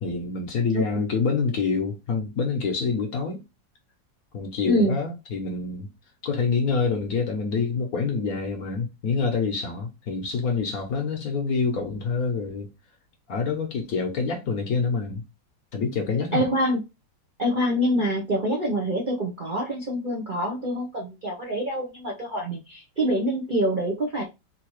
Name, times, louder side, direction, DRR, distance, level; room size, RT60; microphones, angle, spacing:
voice 1, 0.0-3.4 4.3-5.9 6.2-12.7 13.3-15.2 15.7-16.5, left 4 dB, 60° left, 1.1 m, -26 dB
voice 2, 4.6-5.0 16.3-16.8 17.4-24.2, equal, 45° right, 0.6 m, -25 dB
3.8 x 2.7 x 3.1 m
omnidirectional pair, 2.0 m